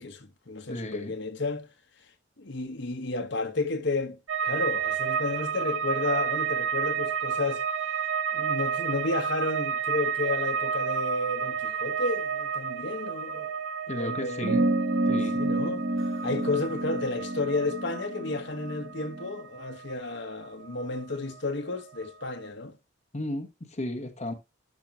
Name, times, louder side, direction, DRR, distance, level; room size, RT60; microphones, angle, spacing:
voice 1, 0.0-1.7 2.4-7.6 8.3-13.6 13.9-14.7 15.3-15.8 16.2-22.7, left 2 dB, 65° left, 1.3 m, -32 dB
voice 2, 0.7-1.1 13.9-14.7 15.0-15.4 23.1-24.3, left 1 dB, 35° left, 1.1 m, -34 dB
sound 1, 4.3-21.4 21.7-22.4, right 7 dB, 90° right, 1.7 m, -31 dB
sound 2, 14.4-19.3, right 1 dB, 40° right, 0.7 m, -29 dB
12.0 x 6.0 x 2.9 m
head